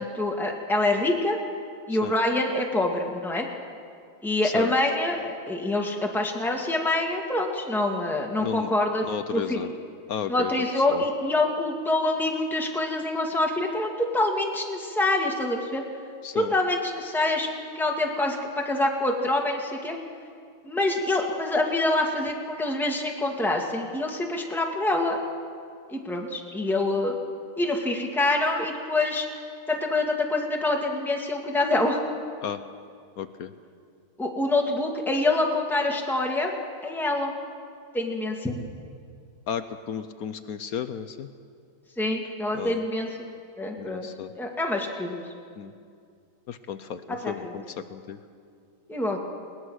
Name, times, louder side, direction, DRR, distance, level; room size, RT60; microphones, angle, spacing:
voice 1, 0.0-1.4 1.9-3.5 4.2-9.6 10.3-15.8 16.3-17.5 17.7-20.0 20.6-25.2 25.9-27.2 27.6-29.3 29.7-32.0 34.2-36.6 36.8-37.3 37.9-38.5 42.0-43.3 43.6-44.1 44.4-45.2 47.2-47.5 48.9-49.2, left 2 dB, ahead, 0 dB, 1.8 m, -26 dB
voice 2, 8.4-8.7 9.0-9.7 10.1-11.0 16.2-16.5 32.4-32.6 33.2-33.5 39.5-41.3 42.5-42.8 43.8-44.3 45.6-45.7 46.5-48.2, left 8 dB, 65° left, 11 dB, 1.0 m, -34 dB
20.5 x 20.0 x 6.3 m, 2.2 s
omnidirectional pair, 2.0 m